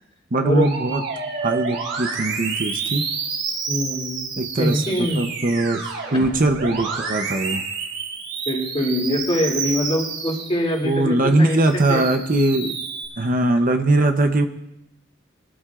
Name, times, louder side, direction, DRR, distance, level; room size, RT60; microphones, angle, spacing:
voice 1, 0.3-1.0 1.4-3.0 4.4-7.6 10.8-12.8 13.2-14.5, right 2 dB, 45° right, 5 dB, 0.8 m, -21 dB
Musical instrument, 0.6-11.0 11.5-13.0, right 5 dB, 75° right, 3.6 m, -29 dB
voice 2, 3.7-4.3 4.6-5.3 6.1-6.3 8.5-11.6 11.9-12.0, equal, 30° left, -1 dB, 2.7 m, -23 dB
22.0 x 12.5 x 2.5 m, 0.87 s
head